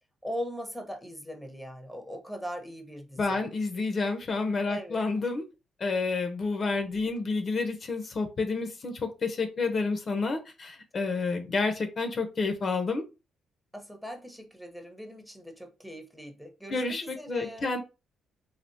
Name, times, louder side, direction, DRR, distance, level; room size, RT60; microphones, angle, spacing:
voice 1, 0.2-3.4 4.7-5.0 13.7-17.7, equal, ahead, 0.8 m, -40 dB
voice 2, 3.2-5.4 5.8-13.0 16.7-17.8, left 3 dB, 45° left, 0.6 m, -29 dB
3.4 x 2.3 x 2.6 m
cardioid pair, 90°, 0 cm